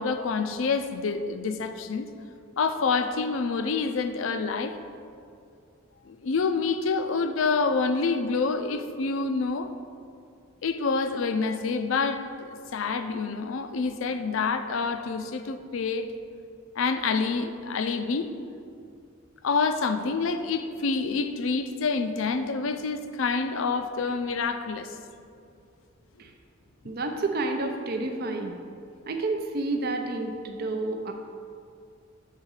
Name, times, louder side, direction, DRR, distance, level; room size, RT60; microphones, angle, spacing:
voice 1, 0.0-2.1 2.6-4.8 6.0-9.7 10.6-16.1 16.8-18.3 19.4-24.9, left 4 dB, 70° left, 9 dB, 0.5 m, -27 dB
voice 2, 26.8-28.6 29.1-31.1, right 2 dB, 50° right, 4 dB, 0.5 m, -30 dB
7.4 x 3.7 x 6.4 m, 2.4 s
head